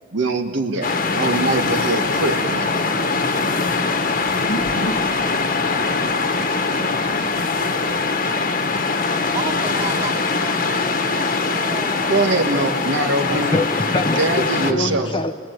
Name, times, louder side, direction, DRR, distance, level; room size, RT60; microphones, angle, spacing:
voice 1, 0.1-2.9 12.1-13.5 14.2-15.1, right 2 dB, 70° right, 1.7 m, -22 dB
sound 1, 0.8-14.7, left 4 dB, 50° left, 1.5 m, -22 dB
sound 2, 4.2-9.0, equal, 85° left, 1.3 m, -35 dB
voice 2, 4.4-8.0 9.3-12.1 12.9-13.6, right 3 dB, 35° right, 2.7 m, -36 dB
voice 3, 13.3-15.3, left 2 dB, 25° left, 0.7 m, -24 dB
27.5 x 20.0 x 9.4 m
head